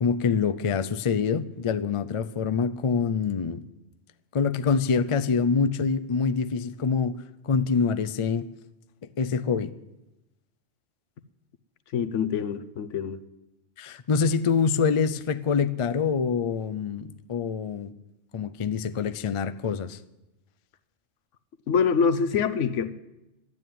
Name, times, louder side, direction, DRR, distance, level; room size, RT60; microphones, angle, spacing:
voice 1, 0.0-3.6 4.3-8.5 9.2-9.7 13.8-17.9 18.3-20.0, left 5 dB, 45° left, 0.4 m, -25 dB
voice 2, 11.9-13.2 21.7-22.9, left 6 dB, 75° left, 1.1 m, -25 dB
12.5 x 9.6 x 9.3 m
omnidirectional pair, 1.3 m